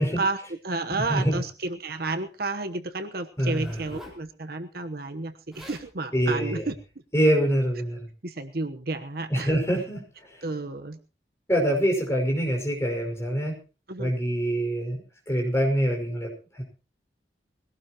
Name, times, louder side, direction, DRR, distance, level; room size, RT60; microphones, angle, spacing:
voice 1, 0.0-6.7 8.2-9.5 10.4-11.0 13.9-14.1, right 3 dB, 55° right, 9 dB, 1.1 m, -31 dB
voice 2, 0.9-1.4 3.4-3.8 6.1-6.7 7.1-8.1 9.3-10.0 11.5-13.5 14.0-16.6, equal, 15° left, 1 dB, 5.4 m, -25 dB
Zipper (clothing), 3.4-4.2 5.2-5.3 5.5-5.9 6.6-6.8, left 1 dB, ahead, 3.9 m, -45 dB
21.0 x 17.0 x 3.0 m, 0.33 s
head